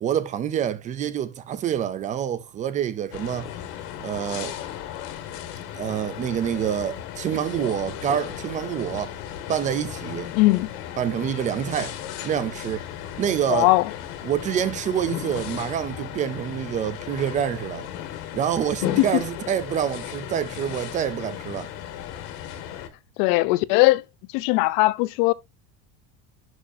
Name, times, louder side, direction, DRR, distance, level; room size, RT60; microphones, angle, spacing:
voice 1, 0.0-3.5 4.0-4.6 5.7-9.1 9.5-10.3 11.0-12.0 12.2-12.8 13.2-13.7 14.2-17.9 18.3-21.7, right 9 dB, 20° right, 0.3 m, -27 dB
sound 1, 3.1-22.9, left 10 dB, 75° left, 2.1 m, -35 dB
voice 2, 10.3-10.7 13.5-13.9 19.0-19.1 23.2-24.0 24.3-25.3, left 20 dB, 55° left, 0.7 m, -19 dB
11.0 x 6.3 x 2.6 m
cardioid pair, 170°, 46 cm